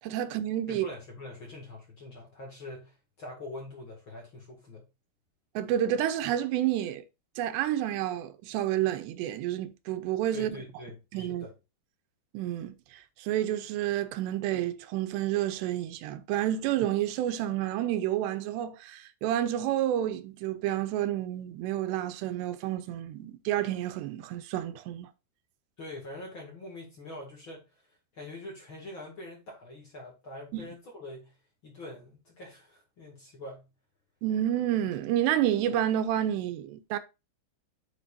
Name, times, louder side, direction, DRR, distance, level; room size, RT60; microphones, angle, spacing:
voice 1, 0.0-0.9 5.6-7.0 7.4-10.6 11.1-11.5 12.3-25.1 30.5-30.6 34.2-37.0, right 12 dB, 90° right, 3.0 m, -29 dB
voice 2, 0.7-4.9 10.3-11.5 25.8-27.8 28.1-31.4 31.6-33.7, left 2 dB, 40° left, 2.1 m, -44 dB
10.0 x 6.7 x 2.6 m
omnidirectional pair, 4.8 m